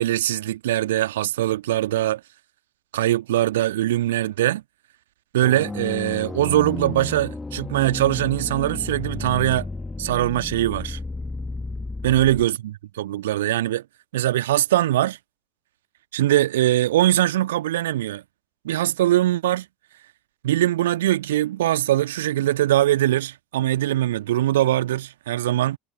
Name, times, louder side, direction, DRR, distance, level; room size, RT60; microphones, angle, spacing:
voice 1, 0.0-2.2 2.9-4.6 5.3-9.7 10.0-11.0 12.0-13.8 14.1-15.2 16.1-18.2 18.6-19.7 20.4-25.8, right 14 dB, 65° right, 1.7 m, -22 dB
sound 1, 5.4-12.4, left 3 dB, 10° left, 1.4 m, -32 dB
figure-of-eight pair, 70°, 0 cm